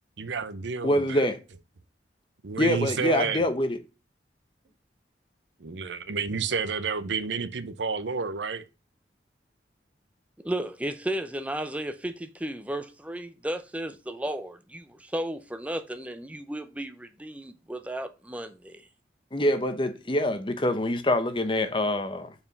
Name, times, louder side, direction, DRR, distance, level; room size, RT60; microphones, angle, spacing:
voice 1, 0.2-1.2 2.4-3.4 5.6-8.6, right 5 dB, 80° right, 0.6 m, -30 dB
voice 2, 0.8-1.4 2.6-3.8 19.3-22.3, left 1 dB, 25° left, 0.8 m, -25 dB
voice 3, 10.4-18.9, right 1 dB, 10° right, 0.5 m, -34 dB
5.5 x 4.8 x 5.2 m
head